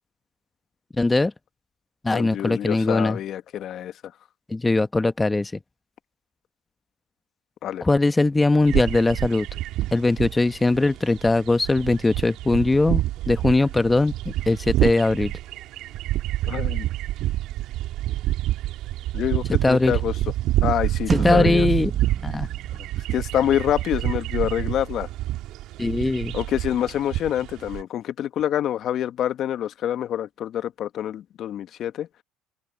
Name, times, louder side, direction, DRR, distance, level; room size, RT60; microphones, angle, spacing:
voice 1, 1.0-1.3 2.0-3.2 4.5-5.6 7.8-9.5 9.9-15.3 19.6-19.9 21.1-21.9 22.2-22.5 25.8-26.3, left 2 dB, 15° left, 1.0 m, -21 dB
voice 2, 2.1-3.9 7.6-7.8 16.5-16.9 19.1-20.1 20.6-21.7 23.1-25.1 26.3-32.1, left 11 dB, 55° left, 1.3 m, -26 dB
sound 1, 8.7-27.8, right 15 dB, 65° right, 2.7 m, -28 dB
sound 2, 21.1-23.6, right 7 dB, 40° right, 1.2 m, -28 dB
open air
hypercardioid pair, 70°, 0 cm